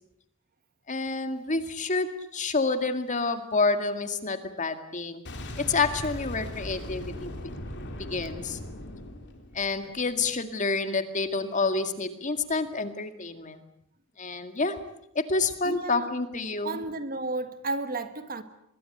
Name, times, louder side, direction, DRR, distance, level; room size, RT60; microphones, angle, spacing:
voice 1, 0.9-5.2 5.6-7.3 8.1-8.6 9.5-13.6 14.2-14.8 15.3-16.8, left 3 dB, 35° left, 2.1 m, -28 dB
Boom, 5.3-10.1, left 1 dB, 55° left, 4.0 m, -39 dB
voice 2, 15.6-16.1 16.6-18.4, right 2 dB, 40° right, 1.7 m, -33 dB
25.0 x 22.0 x 8.0 m
head